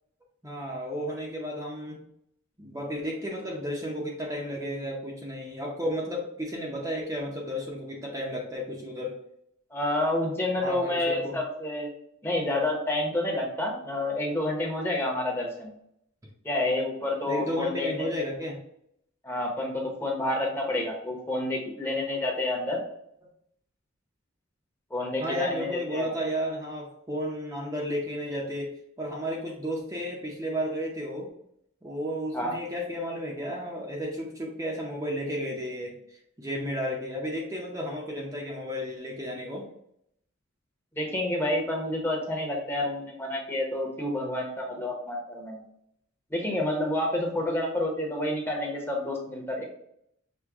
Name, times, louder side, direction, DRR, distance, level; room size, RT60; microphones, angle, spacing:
voice 1, 0.4-2.0 2.6-9.2 10.6-11.4 17.3-18.6 25.2-31.3 31.8-39.7, equal, 15° right, -3 dB, 0.6 m, -33 dB
voice 2, 9.7-11.9 12.2-15.7 16.4-18.1 19.2-22.8 24.9-26.1 32.3-32.6 40.9-45.6 46.3-49.6, left 1 dB, 10° left, 0 dB, 0.9 m, -29 dB
6.1 x 2.2 x 3.5 m, 0.73 s
head